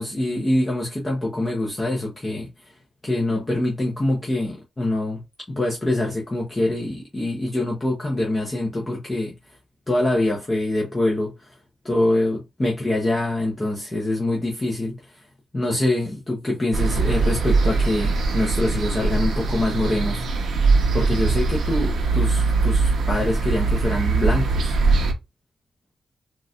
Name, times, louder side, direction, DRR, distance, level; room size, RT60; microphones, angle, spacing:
voice 1, 0.0-2.7 3.0-5.2 5.5-9.3 9.9-11.5 11.8-15.2 15.5-20.2 20.9-24.8, left 1 dB, 20° left, 0.7 m, -24 dB
sound 1, 16.7-25.1, right 3 dB, 80° right, 0.7 m, -21 dB
3.9 x 2.5 x 2.3 m
wide cardioid pair, 165°, 0 cm